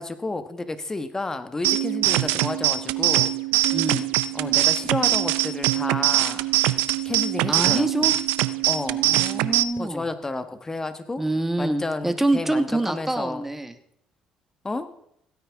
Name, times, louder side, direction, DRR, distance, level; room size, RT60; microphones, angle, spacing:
voice 1, 0.0-3.3 4.3-6.5 7.0-8.1 8.6-9.1 9.8-11.2 11.6-13.4 14.6-14.9, left 2 dB, 20° left, 10 dB, 1.3 m, -31 dB
sound 1, 1.6-9.6, right 16 dB, 85° right, 0.4 m, -22 dB
voice 2, 3.7-4.1 7.5-8.1 8.9-10.1 11.2-13.7, right 2 dB, 10° right, 8 dB, 1.3 m, -26 dB
16.5 x 9.2 x 3.6 m, 0.74 s
supercardioid pair, 70°, 3 cm